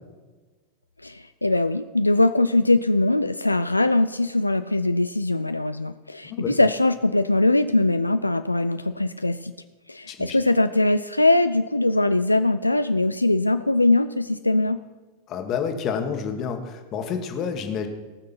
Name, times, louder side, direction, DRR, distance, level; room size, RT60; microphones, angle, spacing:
voice 1, 1.0-9.5 9.9-14.8, left 2 dB, 85° left, 11 dB, 0.3 m, -21 dB
voice 2, 10.1-10.4 15.3-17.9, left 6 dB, 35° left, 6 dB, 1.6 m, -29 dB
18.5 x 6.5 x 5.9 m, 1.3 s
figure-of-eight pair, 90°, 0 cm